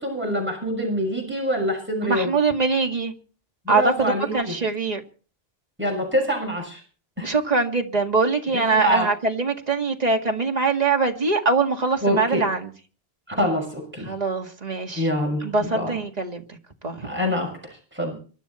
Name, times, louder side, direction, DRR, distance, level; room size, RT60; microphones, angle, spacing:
voice 1, 0.0-2.3 3.6-4.5 5.8-6.8 7.2-7.3 8.5-9.1 12.0-12.4 13.3-14.1 14.9-15.9 17.0-18.1, equal, 10° right, 6.3 m, -25 dB
voice 2, 2.0-3.1 3.7-5.0 7.2-12.7 14.0-15.1 15.4-16.4 16.8-17.1, right 4 dB, 40° right, 2.1 m, -23 dB
24.5 x 12.5 x 4.3 m
omnidirectional pair, 1.1 m